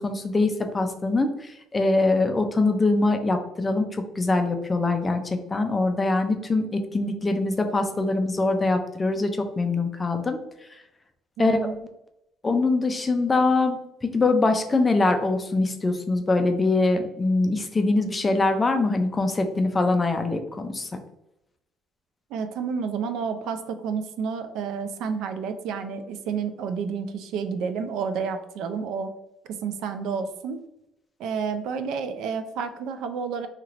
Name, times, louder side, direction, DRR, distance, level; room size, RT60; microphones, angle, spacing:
voice 1, 0.0-10.4 11.4-11.6 12.4-20.9, left 3 dB, 15° left, 6 dB, 0.3 m, -23 dB
voice 2, 11.4-11.8 22.3-29.1 29.6-30.6 31.2-33.5, right 6 dB, 70° right, 8 dB, 0.3 m, -30 dB
3.1 x 2.8 x 2.4 m, 0.86 s
cardioid pair, 155°, 0 cm